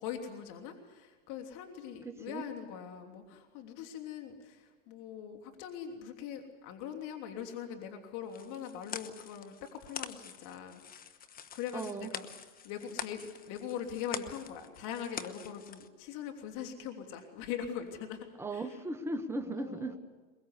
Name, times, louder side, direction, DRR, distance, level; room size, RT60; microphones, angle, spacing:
voice 1, 0.0-10.8 11.5-12.3 12.6-18.7 19.5-20.0, left 8 dB, 45° left, 4 dB, 3.1 m, -42 dB
voice 2, 2.0-2.5 11.7-12.1 18.4-20.0, right 2 dB, 5° right, 7 dB, 1.5 m, -37 dB
sound 1, 8.3-15.9, left 7 dB, 20° left, 1.2 m, -45 dB
22.5 x 22.5 x 8.2 m, 1.3 s
hypercardioid pair, 115°, 41 cm